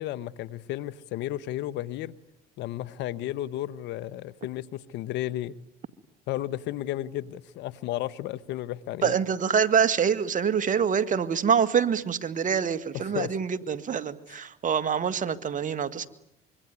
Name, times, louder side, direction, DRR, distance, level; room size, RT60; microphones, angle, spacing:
voice 1, 0.0-2.2 2.6-5.5 6.3-9.2 12.9-13.4, left 14 dB, 75° left, 1.1 m, -33 dB
voice 2, 9.0-16.1, right 7 dB, 45° right, 2.0 m, -25 dB
25.5 x 24.0 x 9.7 m
supercardioid pair, 75°, 19 cm